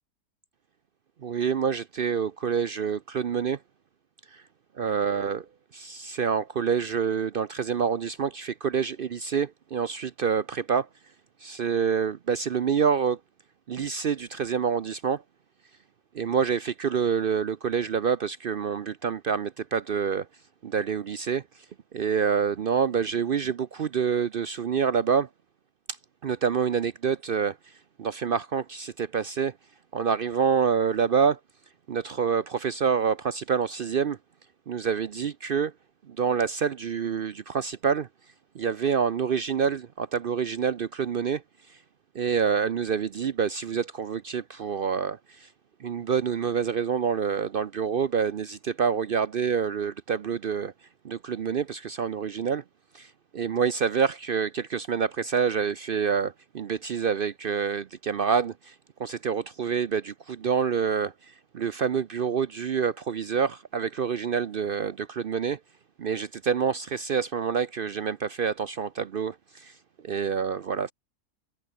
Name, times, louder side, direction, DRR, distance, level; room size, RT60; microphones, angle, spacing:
voice 1, 1.2-3.6 4.3-4.4 4.7-5.5 5.7-10.9 11.4-13.2 13.7-15.2 16.1-20.3 20.6-21.7 21.9-25.3 25.9-26.0 26.2-29.6 29.9-31.4 31.9-34.2 34.7-35.7 36.1-38.1 38.5-41.4 41.7-41.8 42.1-45.5 45.8-50.7 51.0-52.6 52.9-65.6 66.0-69.8 70.0-70.9, right 6 dB, 60° right, 0.5 m, -27 dB
omnidirectional pair, 1.7 m